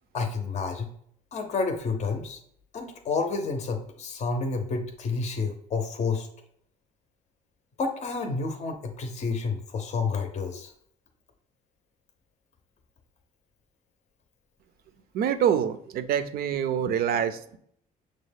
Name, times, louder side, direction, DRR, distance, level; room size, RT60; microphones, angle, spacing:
voice 1, 0.1-0.9 1.3-2.4 2.7-6.3 7.8-10.7, left 4 dB, 40° left, 5 dB, 0.6 m, -30 dB
voice 2, 15.1-17.6, right 9 dB, 65° right, 10 dB, 0.4 m, -26 dB
6.1 x 2.1 x 3.4 m, 0.65 s
cardioid pair, 110°, 17 cm